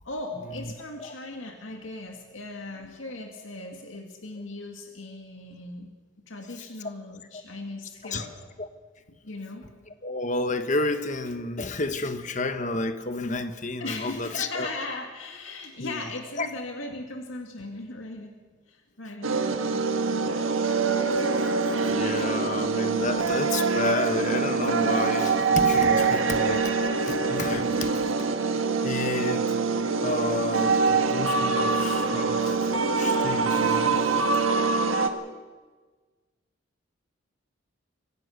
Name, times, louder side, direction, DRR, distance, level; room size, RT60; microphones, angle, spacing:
voice 1, 0.0-5.9 6.3-8.3 9.2-9.6 13.8-18.3 18.7-20.5, left 2 dB, 75° left, 3 dB, 2.2 m, -38 dB
voice 2, 10.0-14.7 15.8-16.0 16.4-16.5 21.4-21.5 21.8-26.7 27.0-28.1 28.8-29.6 30.0-32.7 33.0-34.0, left 2 dB, 40° left, 9 dB, 1.2 m, -31 dB
sound 1, 19.2-35.1, right 4 dB, 80° right, 1.6 m, -24 dB
24.5 x 16.5 x 6.6 m, 1.4 s
head